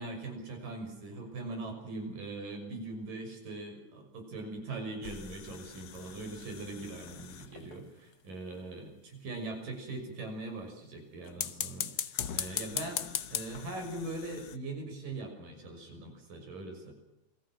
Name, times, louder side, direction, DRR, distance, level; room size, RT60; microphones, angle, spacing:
voice 1, 0.0-16.9, right 2 dB, 90° right, 4 dB, 7.7 m, -41 dB
sound 1, 5.0-7.9 11.3-14.6, left 9 dB, 80° left, 1.0 m, -39 dB
29.0 x 23.0 x 6.2 m, 0.83 s
omnidirectional pair, 3.7 m